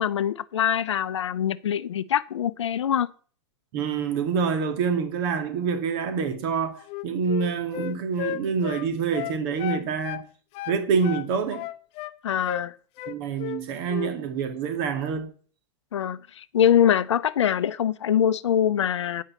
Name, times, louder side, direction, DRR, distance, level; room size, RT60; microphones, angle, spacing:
voice 1, 0.0-3.1 12.2-12.7 15.9-19.2, left 9 dB, 80° left, 0.7 m, -23 dB
voice 2, 3.7-10.2 10.7-11.7 13.1-15.3, right 6 dB, 50° right, 2.1 m, -26 dB
Wind instrument woodwind instrument, 6.8-10.3 10.5-12.2 12.4-12.7 13.0-13.6 13.9-14.1, left 12 dB, 40° left, 0.7 m, -34 dB
9.8 x 5.5 x 7.2 m
hypercardioid pair, 110°, 15 cm